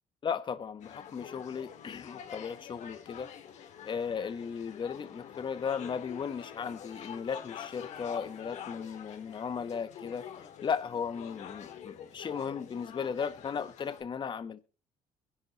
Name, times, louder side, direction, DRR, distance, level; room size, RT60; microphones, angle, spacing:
voice 1, 0.2-3.3 3.8-10.3 10.6-14.6, left 6 dB, 40° left, 1.3 m, -36 dB
sound 1, 0.8-14.0, left 8 dB, 70° left, 2.4 m, -46 dB
23.0 x 11.0 x 3.1 m
cardioid pair, 105°, 12 cm